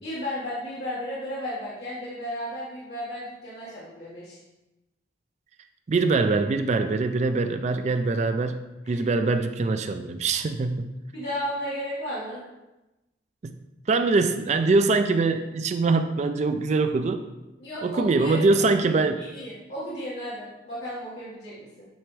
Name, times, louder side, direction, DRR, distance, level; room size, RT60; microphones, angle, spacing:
voice 1, 0.0-4.4 8.8-9.0 11.1-12.4 17.6-18.4 19.2-21.9, equal, 55° left, -10 dB, 1.6 m, -34 dB
voice 2, 5.9-10.9 13.4-13.5 13.9-17.2 17.8-19.2, right 3 dB, 35° right, 9 dB, 0.3 m, -23 dB
9.0 x 3.4 x 3.2 m, 1.0 s
head